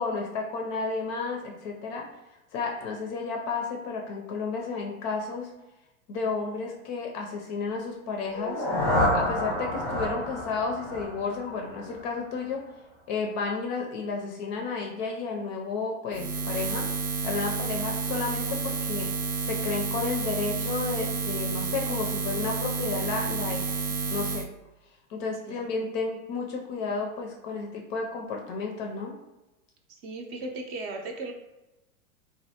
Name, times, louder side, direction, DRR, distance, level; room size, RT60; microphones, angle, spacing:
voice 1, 0.0-2.1 2.5-5.5 6.1-8.6 9.1-12.6 13.1-16.9 17.2-23.8 24.1-24.5 25.1-29.1, left 4 dB, 35° left, 1 dB, 0.4 m, -32 dB
sound 1, 8.2-12.2, left 1 dB, ahead, 0.7 m, -29 dB
Buzz, 16.1-24.5, right 4 dB, 85° right, 0.7 m, -30 dB
voice 2, 29.9-31.3, right 2 dB, 45° right, 3 dB, 0.6 m, -37 dB
3.2 x 2.4 x 2.8 m, 1.0 s
hypercardioid pair, 125°, 43 cm